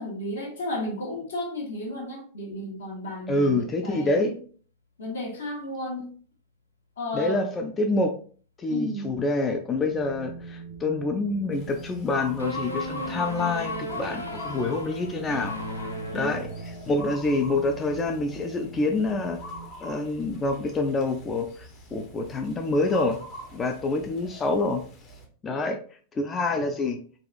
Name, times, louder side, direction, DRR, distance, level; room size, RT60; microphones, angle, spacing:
voice 1, 0.0-4.4 5.0-6.1 7.0-7.4 8.7-9.1 16.1-16.4, left 1 dB, 65° left, 1.0 m, -33 dB
voice 2, 3.3-4.4 7.1-8.1 8.6-16.5 16.9-19.4 19.8-23.2 23.5-24.8 25.4-25.8 26.2-27.0, left 2 dB, 20° left, 0.3 m, -27 dB
Wind, 9.7-19.7, right 3 dB, 55° right, 0.5 m, -43 dB
sound 1, 11.5-25.2, left 2 dB, 40° left, 0.8 m, -41 dB
sound 2, 12.4-17.0, left 1 dB, 85° left, 0.4 m, -36 dB
3.9 x 2.4 x 2.4 m
figure-of-eight pair, 90°, 0 cm